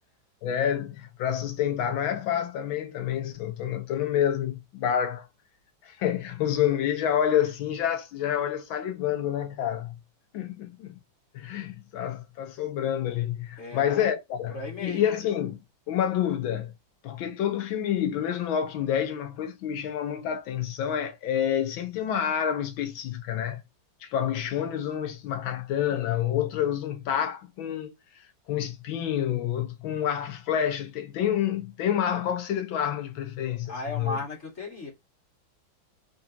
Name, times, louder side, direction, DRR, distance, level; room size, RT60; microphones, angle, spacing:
voice 1, 0.4-5.3 5.8-10.0 10.3-11.0 11.3-15.6 15.9-16.7 17.0-23.6 24.0-34.2, left 9 dB, 80° left, 1.5 m, -28 dB
voice 2, 13.6-14.1 14.5-15.2 33.7-34.9, left 2 dB, 35° left, 1.8 m, -36 dB
3.8 x 3.5 x 2.8 m
omnidirectional pair, 2.1 m